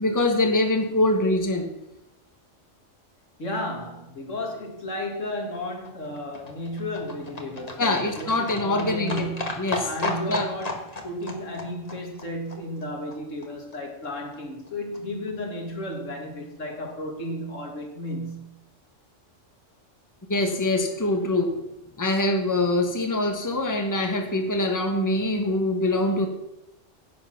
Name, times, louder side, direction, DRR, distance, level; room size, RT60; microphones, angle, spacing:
voice 1, 0.0-1.7 7.8-9.3 9.6-10.5 20.3-21.6 22.0-26.3, left 2 dB, 15° left, 1.3 m, -24 dB
voice 2, 3.4-18.5, left 1 dB, 85° left, 2.5 m, -33 dB
Livestock farm animals working animals, 5.2-13.5 13.7-13.8 14.0-14.1 14.3-14.4 14.6-14.7 14.9-15.0 15.3-15.4 15.6-15.7 15.9-16.0, left 2 dB, 35° left, 1.6 m, -35 dB
11.0 x 8.6 x 6.0 m
omnidirectional pair, 1.3 m